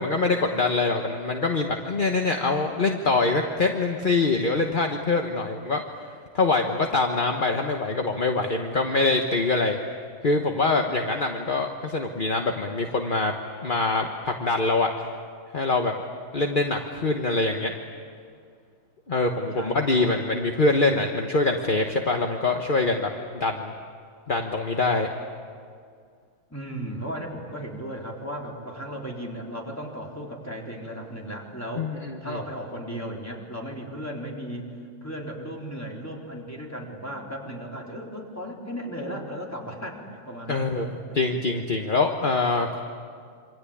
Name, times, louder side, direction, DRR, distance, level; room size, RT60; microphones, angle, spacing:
voice 1, 0.0-5.8 6.3-9.8 10.2-13.3 13.6-14.9 15.5-15.9 16.3-17.7 19.1-23.7 24.3-25.1 31.8-32.4 40.5-42.8, left 3 dB, 30° left, 3 dB, 1.1 m, -24 dB
voice 2, 19.5-20.1 26.5-34.7 35.0-41.2, equal, 5° left, -1 dB, 3.8 m, -36 dB
27.5 x 25.0 x 8.6 m, 2.2 s
omnidirectional pair, 2.3 m